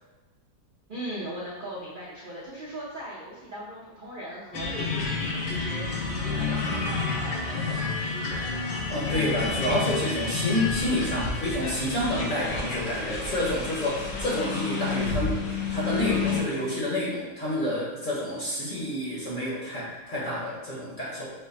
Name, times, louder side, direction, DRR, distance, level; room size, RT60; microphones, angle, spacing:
voice 1, 0.9-8.5, right 1 dB, 70° right, -6 dB, 0.5 m, -39 dB
sound 1, 4.5-16.4, left 4 dB, 80° left, 1.5 m, -30 dB
voice 2, 8.9-21.3, left 1 dB, 30° left, -7 dB, 1.1 m, -29 dB
6.0 x 2.1 x 4.0 m, 1.2 s
omnidirectional pair, 2.0 m